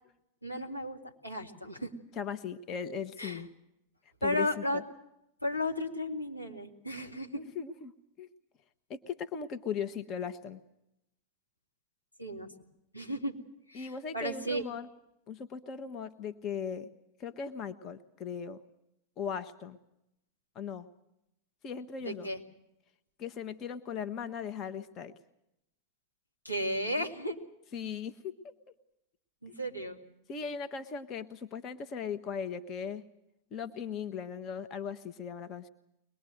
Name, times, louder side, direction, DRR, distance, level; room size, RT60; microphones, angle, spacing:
voice 1, 0.4-1.9 3.2-3.4 4.2-4.8 5.4-7.4 12.2-12.5 12.9-13.4 13.7-14.6 22.0-22.4 26.4-27.4 29.4-30.0, left 1 dB, 90° left, -1 dB, 2.5 m, -34 dB
voice 2, 2.2-3.5 4.2-4.8 7.3-7.9 8.2-8.3 8.9-10.6 13.7-14.9 15.3-16.9 17.2-18.6 19.2-19.8 20.5-20.9 21.6-22.3 23.2-25.1 27.7-28.5 29.5-29.6 30.3-33.0 33.5-35.7, left 7 dB, 35° left, 10 dB, 1.2 m, -38 dB
23.0 x 20.5 x 7.9 m, 0.84 s
figure-of-eight pair, 90°, 0 cm